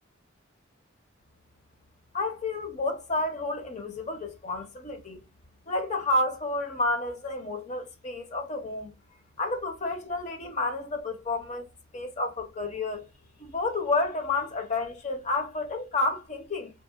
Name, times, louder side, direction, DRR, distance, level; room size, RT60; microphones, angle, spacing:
voice 1, 2.1-5.2 5.7-8.9 9.4-11.6 11.9-13.1 13.4-16.7, left 2 dB, 35° left, 0.5 m, -30 dB
2.8 x 2.1 x 2.3 m
head